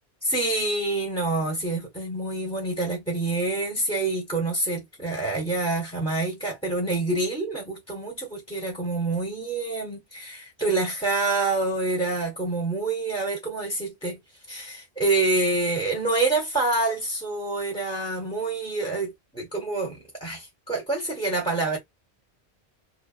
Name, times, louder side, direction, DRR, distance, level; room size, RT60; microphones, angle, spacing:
voice 1, 0.2-14.2 14.5-21.8, right 2 dB, 5° left, 0.9 m, -27 dB
2.6 x 2.2 x 2.4 m
omnidirectional pair, 1.1 m